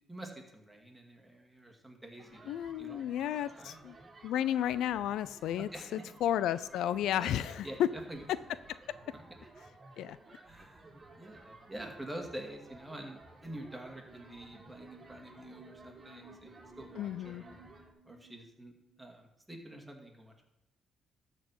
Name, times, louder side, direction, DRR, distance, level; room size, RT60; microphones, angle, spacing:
voice 1, 0.1-3.8 5.6-6.0 7.1-7.8 8.1-8.2 9.4-9.5 10.4-17.6 18.0-18.7 19.0-20.4, right 1 dB, 10° right, 2 dB, 2.4 m, -47 dB
sound 1, 2.2-17.9, right 2 dB, 30° right, 2.1 m, -55 dB
voice 2, 2.5-4.0 4.2-7.9 8.7-9.0 10.0-10.2 17.0-17.4, left 11 dB, 85° left, 16 dB, 0.4 m, -33 dB
sound 2, 13.3-19.0, right 2 dB, 80° right, 1.6 m, -59 dB
12.5 x 4.6 x 7.5 m, 0.86 s
cardioid pair, 90°, 0 cm